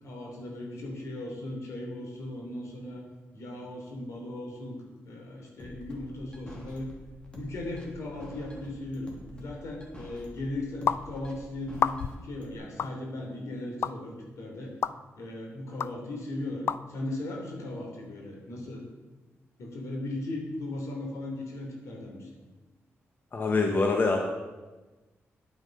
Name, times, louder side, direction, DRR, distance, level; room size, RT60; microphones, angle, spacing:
voice 1, 0.0-3.0 3.3-4.8 5.0-6.9 7.3-14.7 15.2-18.8 19.6-22.3, left 1 dB, 80° left, 0 dB, 3.3 m, -37 dB
sound 1, 5.6-12.6, left 1 dB, 20° left, 2.6 m, -47 dB
sound 2, 10.9-11.0 11.7-12.2 12.8-12.9 13.8-13.9 14.8-14.9 15.8-15.9 16.7-16.8, left 7 dB, 60° left, 0.4 m, -27 dB
voice 2, 23.3-24.2, left 3 dB, 40° left, 2 dB, 1.3 m, -24 dB
9.8 x 9.2 x 5.4 m, 1.2 s
cardioid pair, 100°, 5 cm